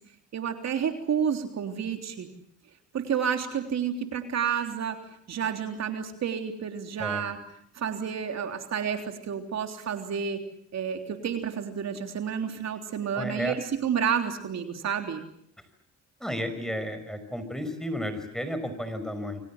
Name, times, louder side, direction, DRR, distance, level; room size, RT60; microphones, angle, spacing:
voice 1, 0.3-2.3 2.9-5.0 5.3-7.4 7.7-10.4 10.7-15.2, right 7 dB, 60° right, 5 dB, 3.5 m, -30 dB
voice 2, 7.0-7.3 13.1-13.5 16.2-19.4, equal, ahead, 10 dB, 5.7 m, -33 dB
29.0 x 24.5 x 7.4 m, 0.69 s
cardioid pair, 90°, 30 cm